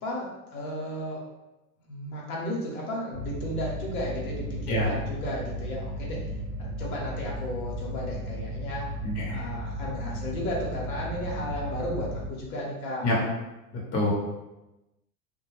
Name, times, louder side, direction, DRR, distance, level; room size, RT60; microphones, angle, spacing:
voice 1, 0.0-1.3 1.9-6.3 6.6-8.9 9.3-13.1, left 1 dB, 70° left, -4 dB, 1.0 m, -34 dB
sound 1, 3.1-12.3, right 1 dB, 30° right, 0.4 m, -35 dB
voice 2, 9.0-9.4 13.0-13.1 13.9-14.1, left 1 dB, 35° left, -4 dB, 0.9 m, -26 dB
2.2 x 2.2 x 3.1 m, 0.99 s
hypercardioid pair, 95°, 44 cm